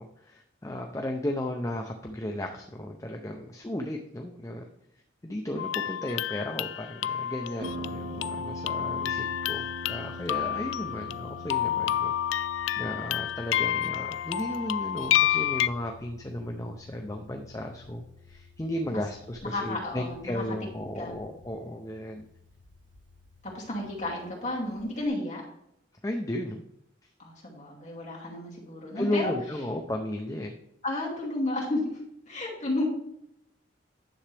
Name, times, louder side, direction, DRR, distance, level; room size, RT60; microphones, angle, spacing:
voice 1, 0.0-4.7 5.2-12.1 12.8-22.2 26.0-26.6 29.0-30.5, left 1 dB, 15° left, 3 dB, 0.6 m, -34 dB
sound 1, 5.6-15.7, left 11 dB, 85° left, 0.3 m, -29 dB
Harp, 7.6-25.1, equal, 80° right, 1.6 m, -45 dB
voice 2, 13.5-14.0 18.9-19.0 19.4-20.4 20.9-21.1 23.5-25.4 27.2-29.3 30.8-32.0 32.3-32.8, left 1 dB, 40° left, -4 dB, 2.6 m, -32 dB
10.0 x 7.1 x 3.4 m, 0.78 s
head